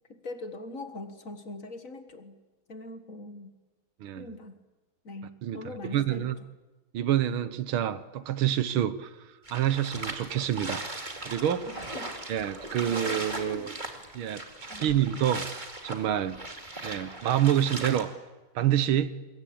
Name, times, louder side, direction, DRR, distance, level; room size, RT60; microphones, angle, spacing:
voice 1, 0.1-2.3 2.7-3.5 4.2-4.6 5.0-6.3 11.7-12.1 12.8-13.8 14.7-15.1, left 2 dB, 40° left, 2.0 m, -42 dB
voice 2, 5.4-6.4 6.9-9.2 9.5-11.7 12.3-13.8 14.1-14.4 14.8-16.4 16.8-18.1 18.6-19.2, right 11 dB, 80° right, 1.8 m, -27 dB
sound 1, 9.5-18.1, right 2 dB, 20° right, 2.5 m, -38 dB
25.5 x 22.0 x 8.6 m
omnidirectional pair, 2.3 m